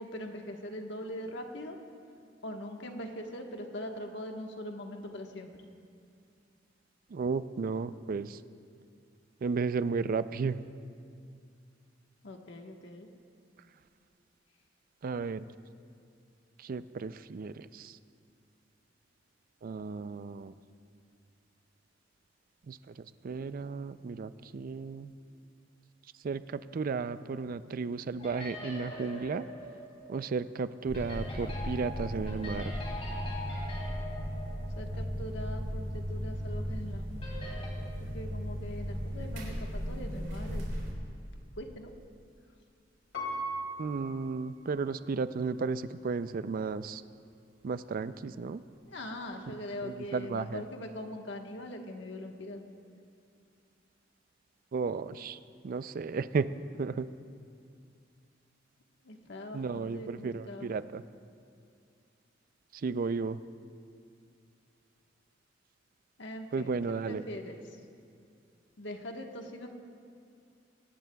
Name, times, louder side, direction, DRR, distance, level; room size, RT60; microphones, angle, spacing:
voice 1, 0.0-1.8 2.4-5.5 12.2-13.1 34.8-37.3 38.0-40.7 41.6-41.9 48.9-52.6 59.0-60.7 66.2-67.6 68.8-69.7, left 1 dB, 65° left, 3 dB, 1.3 m, -42 dB
voice 2, 7.1-8.4 9.4-10.7 15.0-15.5 16.6-18.0 19.6-20.5 22.7-22.9 23.2-25.1 26.2-29.5 30.1-32.8 43.8-47.0 47.6-48.6 49.5-49.6 49.8-50.6 54.7-55.4 55.6-56.5 56.8-57.1 59.5-61.0 62.7-63.4 66.5-67.2, right 4 dB, 50° right, 14 dB, 0.4 m, -34 dB
sound 1, 28.2-35.3 35.6-35.7 37.2-37.7, left 1 dB, 35° left, 2.8 m, -44 dB
sound 2, 30.8-40.9, equal, 85° right, 3.5 m, -36 dB
Piano, 43.1-45.1 45.7-45.8, right 1 dB, 90° left, 2.4 m, -39 dB
22.5 x 18.0 x 2.3 m, 2.3 s
head